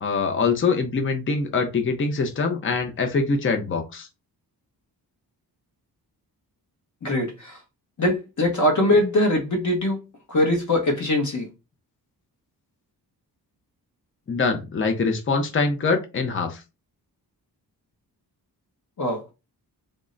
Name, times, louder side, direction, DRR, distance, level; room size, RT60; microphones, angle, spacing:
voice 1, 0.0-4.1 14.3-16.6, left 4 dB, 30° left, 0.6 m, -24 dB
voice 2, 7.0-7.6 8.0-10.0 10.3-11.5 19.0-19.3, left 1 dB, 50° left, 1.0 m, -22 dB
3.6 x 2.1 x 3.7 m
wide cardioid pair, 165°, 39 cm